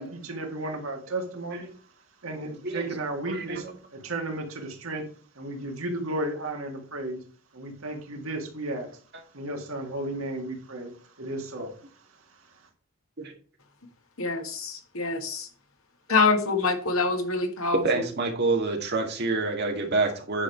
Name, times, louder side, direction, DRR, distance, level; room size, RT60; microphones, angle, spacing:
voice 1, 0.0-1.6 2.2-3.7 3.9-5.1 5.4-7.2 7.5-8.9 9.3-11.7, right 2 dB, 70° right, 3 dB, 2.0 m, -33 dB
voice 2, 3.3-3.6 11.6-11.7 13.2-13.3 17.8-20.4, right 3 dB, 50° right, 2 dB, 2.2 m, -27 dB
voice 3, 14.2-15.5 16.1-17.8, left 4 dB, 70° left, 5 dB, 1.8 m, -25 dB
9.8 x 5.2 x 4.6 m, 0.43 s
head